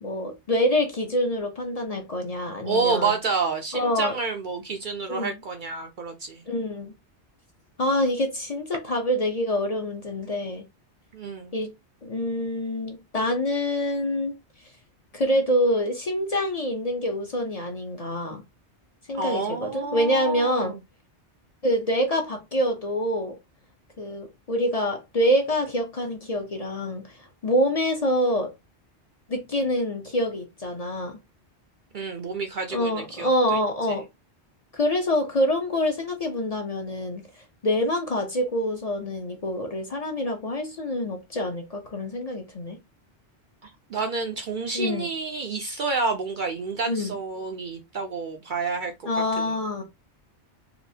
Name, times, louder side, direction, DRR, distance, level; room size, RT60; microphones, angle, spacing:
voice 1, 0.0-3.1 3.7-4.1 5.1-5.4 6.5-6.9 7.8-10.7 11.5-11.7 12.0-14.3 15.1-18.4 19.1-20.8 21.6-23.4 24.0-27.1 27.4-28.5 29.3-31.2 32.7-34.0 34.7-37.3 37.6-42.8 44.7-45.1 46.8-47.1 49.1-49.8, equal, 40° left, 0.7 m, -26 dB
voice 2, 2.7-6.4 11.1-11.5 19.1-20.8 31.9-33.6 43.6-49.1 49.4-49.5, right 4 dB, 55° right, 0.6 m, -29 dB
4.2 x 2.5 x 2.7 m
omnidirectional pair, 1.2 m